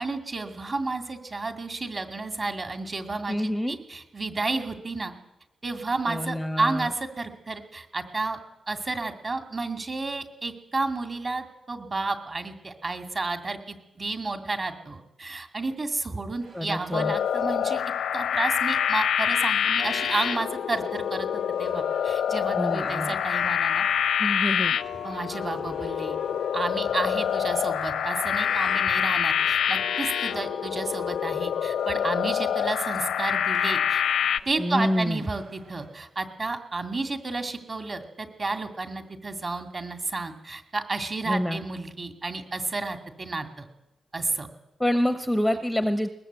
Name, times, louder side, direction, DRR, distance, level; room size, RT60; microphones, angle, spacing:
voice 1, 0.0-5.1 5.6-8.4 8.7-17.8 18.1-21.3 21.6-23.9 25.0-26.2 26.5-34.0 34.5-43.7 44.1-44.5, right 3 dB, 30° right, 6 dB, 2.3 m, -31 dB
voice 2, 3.3-3.8 6.1-6.9 16.5-17.1 22.6-23.2 24.2-24.8 34.6-35.2 41.3-41.6 44.8-46.1, equal, 5° left, 8 dB, 0.9 m, -27 dB
sound 1, 16.4-35.9, right 3 dB, 85° right, 5.6 m, -51 dB
sound 2, 16.9-34.4, left 9 dB, 90° left, 0.7 m, -26 dB
sound 3, 23.1-29.8, right 3 dB, 60° right, 4.9 m, -51 dB
21.5 x 20.5 x 8.1 m, 0.93 s
wide cardioid pair, 170°, 0 cm